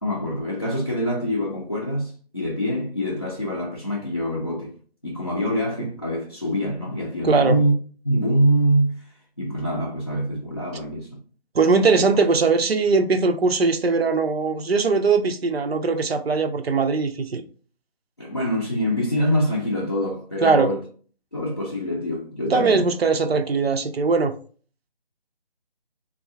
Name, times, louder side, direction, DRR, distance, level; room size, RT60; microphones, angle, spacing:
voice 1, 0.0-4.7 5.0-7.7 8.0-9.0 9.4-11.1 18.2-20.8 21.3-22.9, equal, 25° left, 0.4 m, -24 dB
voice 2, 7.2-7.6 11.5-17.4 20.4-20.7 22.5-24.3, right 4 dB, 80° right, 0.6 m, -20 dB
3.6 x 2.3 x 3.4 m
figure-of-eight pair, 155°, 30 cm